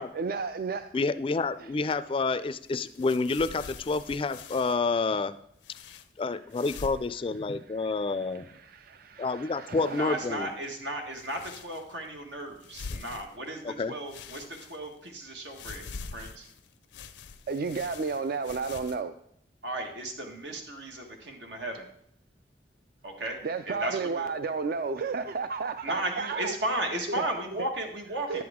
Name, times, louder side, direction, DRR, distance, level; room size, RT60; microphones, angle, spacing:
voice 1, 0.1-0.9 1.6-1.7 7.7-10.3 17.5-19.1 23.4-26.5 28.3-28.4, right 4 dB, 55° right, 10 dB, 0.4 m, -33 dB
voice 2, 0.9-5.3 6.2-8.5 9.2-10.5 12.9-13.0 13.6-13.9, left 3 dB, 30° left, 14 dB, 0.3 m, -29 dB
sound 1, 2.6-4.8 5.6-6.1 6.5-7.1 7.4-7.5 8.0-8.6 9.7-10.3 11.1-12.0 12.5-13.7 14.1-15.1 15.5-19.0, left 5 dB, 90° left, 0.6 m, -45 dB
voice 3, 9.9-16.5 19.6-21.9 23.0-24.3 25.8-28.4, right 1 dB, 90° right, 2 dB, 1.6 m, -35 dB
11.0 x 7.8 x 3.6 m, 0.71 s
head